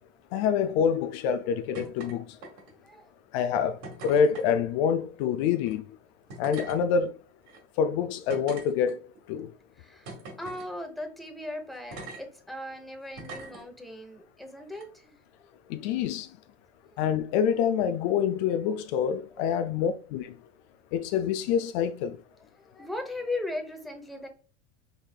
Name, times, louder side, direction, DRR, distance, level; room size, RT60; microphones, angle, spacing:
voice 1, 0.3-2.2 3.3-5.8 6.4-7.1 7.8-9.0 9.3-9.5 15.7-16.3 17.0-20.3 20.9-22.2, left 7 dB, 55° left, 0.5 m, -26 dB
sound 1, 1.7-2.1 2.4-2.9 3.8-4.5 5.6-5.7 6.3-6.8 7.5-7.6 8.3-9.2 10.1-10.7 11.9-12.2 13.2-13.6 14.7-14.8, right 3 dB, 60° right, 2.0 m, -42 dB
voice 2, 9.8-15.5 16.8-17.0 19.3-19.6 22.6-24.3, left 2 dB, ahead, 0.9 m, -38 dB
5.3 x 3.1 x 2.3 m
hypercardioid pair, 85°, 37 cm